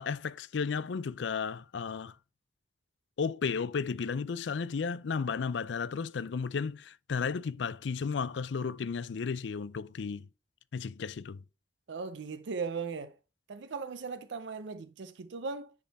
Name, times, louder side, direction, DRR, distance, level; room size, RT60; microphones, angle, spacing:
voice 1, 0.0-2.2 3.2-10.3 10.7-11.4, left 5 dB, 85° left, 0.4 m, -33 dB
voice 2, 11.9-13.2 13.5-15.7, right 4 dB, 80° right, 0.5 m, -38 dB
10.0 x 3.7 x 4.0 m
head